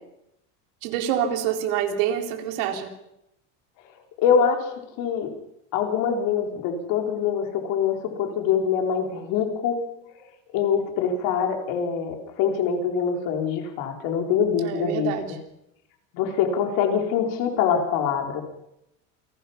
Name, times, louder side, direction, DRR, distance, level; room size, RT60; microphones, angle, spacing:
voice 1, 0.8-2.9 14.6-15.3, right 9 dB, 75° right, 4 dB, 4.0 m, -26 dB
voice 2, 4.2-5.3 5.7-9.8 10.5-15.1 16.1-18.4, left 7 dB, 60° left, 3 dB, 4.2 m, -24 dB
28.5 x 18.0 x 5.8 m, 0.83 s
cardioid pair, 150°, 38 cm